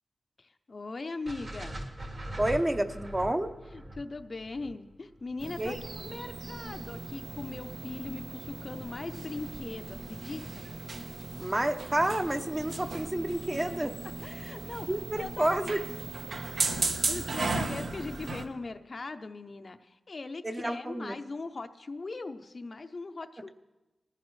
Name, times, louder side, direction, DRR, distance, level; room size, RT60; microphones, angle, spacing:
voice 1, 0.4-1.9 3.7-10.6 11.3-11.4 14.2-14.9 15.2-15.8 17.1-23.5, left 3 dB, 40° left, 8 dB, 0.6 m, -40 dB
sound 1, 1.3-5.4, right 1 dB, 50° right, 2.1 m, -41 dB
voice 2, 2.4-3.5 5.6-5.8 11.4-14.0 14.9-15.8 20.4-21.2, right 1 dB, 20° right, 7 dB, 0.7 m, -29 dB
sound 2, 5.4-18.5, right 3 dB, 75° right, 1.1 m, -36 dB
20.5 x 14.5 x 3.2 m, 1.1 s
wide cardioid pair, 140°, 0 cm